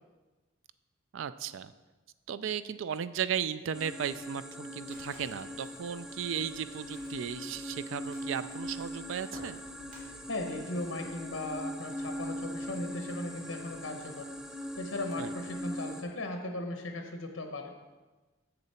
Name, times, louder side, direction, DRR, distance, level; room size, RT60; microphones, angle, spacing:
voice 1, 1.1-1.7 2.3-9.6 15.2-15.3, right 8 dB, 70° right, 14 dB, 0.4 m, -35 dB
sound 1, 3.7-16.0, equal, 5° right, 0.5 m, -41 dB
Crackle, 4.9-10.1, equal, 45° right, 2.3 m, -56 dB
voice 2, 10.3-14.3 14.8-17.7, left 2 dB, 80° left, 4 dB, 0.9 m, -37 dB
7.5 x 6.7 x 4.3 m, 1.2 s
head